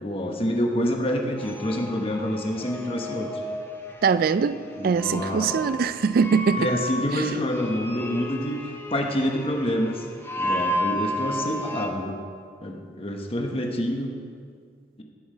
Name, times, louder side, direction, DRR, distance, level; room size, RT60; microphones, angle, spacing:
voice 1, 0.0-3.3 4.8-5.6 6.6-8.5 8.9-10.0 10.3-12.2 12.6-14.1, equal, 30° left, 1.1 m, -27 dB
sound 1, 1.4-11.9, equal, 15° left, 0.9 m, -33 dB
voice 2, 4.0-6.7 7.1-7.2, right 5 dB, 50° right, 0.3 m, -22 dB
16.5 x 6.3 x 5.0 m
head